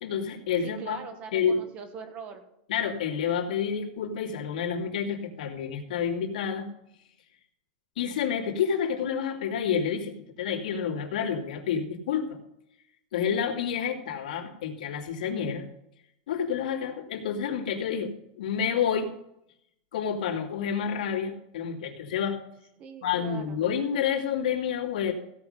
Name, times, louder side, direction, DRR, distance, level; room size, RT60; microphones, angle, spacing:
voice 1, 0.0-1.0 1.3-1.6 2.7-6.7 8.0-12.4 13.1-15.6 16.3-19.1 19.9-22.4 23.0-25.1, left 7 dB, 75° left, 0 dB, 2.7 m, -29 dB
voice 2, 0.6-2.5 22.8-23.6, right 5 dB, 30° right, 7 dB, 1.6 m, -42 dB
16.5 x 5.7 x 6.7 m, 0.79 s
supercardioid pair, 160°, 5 cm